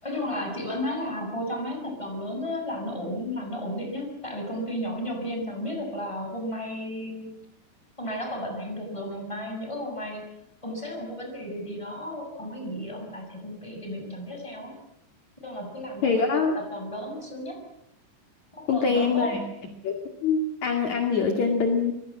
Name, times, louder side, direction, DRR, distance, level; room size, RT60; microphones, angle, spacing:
voice 1, 0.0-7.3 8.0-10.3 10.6-14.7 15.4-17.6 18.5-19.3, left 1 dB, 5° left, 3 dB, 6.5 m, -33 dB
voice 2, 16.0-16.5 18.7-19.4 19.8-19.9 20.2-21.9, left 5 dB, 50° left, 4 dB, 3.2 m, -24 dB
25.5 x 22.5 x 7.5 m, 0.81 s
omnidirectional pair, 4.9 m